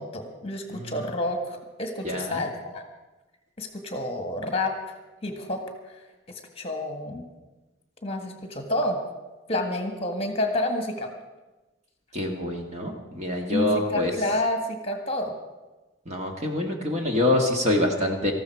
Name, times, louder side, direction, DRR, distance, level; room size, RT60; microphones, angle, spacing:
voice 1, 0.0-2.8 3.6-5.0 5.2-5.6 5.9-6.0 6.6-7.2 8.0-9.0 9.5-11.1 13.5-15.3, left 1 dB, 30° left, 4 dB, 1.7 m, -29 dB
voice 2, 0.7-1.0 2.0-2.4 12.1-14.1 16.1-18.3, left 1 dB, 35° right, 1 dB, 1.8 m, -26 dB
19.5 x 14.5 x 4.7 m, 1.1 s
head